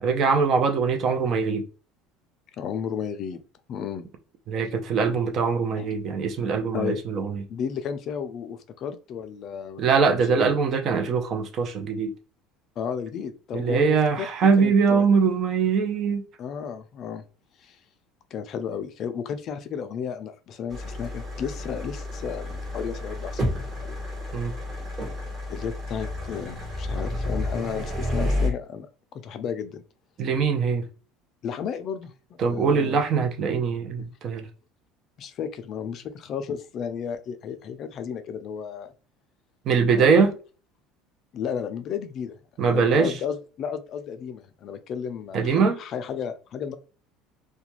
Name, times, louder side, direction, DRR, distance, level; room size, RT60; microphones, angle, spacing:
voice 1, 0.0-1.6 4.5-7.4 9.8-12.1 13.5-16.2 24.3-24.5 30.2-30.8 32.4-34.5 39.7-40.3 42.6-43.1 45.3-45.8, right 5 dB, 45° right, 0.5 m, -22 dB
voice 2, 2.6-3.4 3.7-4.1 5.8-5.9 6.7-7.0 7.5-9.9 10.3-10.5 12.8-15.1 16.4-17.2 17.6-17.8 18.3-24.0 25.5-29.8 31.4-32.1 32.4-33.0 34.0-34.1 35.2-38.9 39.9-40.2 41.3-42.4 42.7-46.8, left 7 dB, 45° left, 0.4 m, -33 dB
sound 1, 20.7-28.5, left 1 dB, 30° right, 1.2 m, -30 dB
2.4 x 2.2 x 2.9 m
cardioid pair, 125°, 0 cm